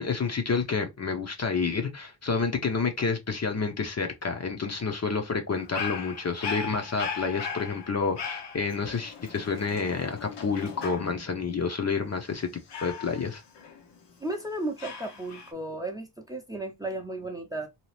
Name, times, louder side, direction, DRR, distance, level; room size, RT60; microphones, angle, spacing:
voice 1, 0.0-12.5 12.8-13.4, left 5 dB, 40° left, 0.6 m, -29 dB
Dog, 5.5-11.4 12.7-14.2 14.8-15.5, left 6 dB, 75° left, 0.8 m, -38 dB
voice 2, 14.2-17.7, right 2 dB, 10° right, 0.6 m, -34 dB
2.8 x 2.4 x 3.1 m
wide cardioid pair, 95°, 43 cm